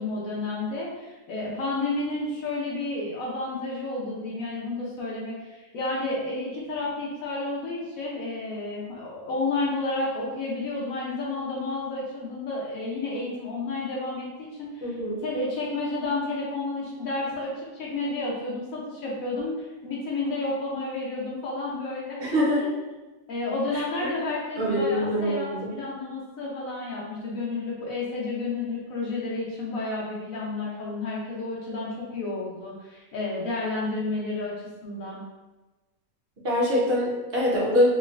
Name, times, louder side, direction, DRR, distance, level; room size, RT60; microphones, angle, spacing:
voice 1, 0.0-15.0 15.2-22.2 22.5-22.7 23.3-34.5 34.8-35.2, left 2 dB, 70° left, -4 dB, 1.1 m, -31 dB
voice 2, 14.8-15.2 22.2-22.6 23.7-24.1 24.6-25.7 36.4-37.9, equal, 45° right, -5 dB, 1.0 m, -24 dB
3.1 x 3.0 x 2.4 m, 1.1 s
omnidirectional pair, 1.5 m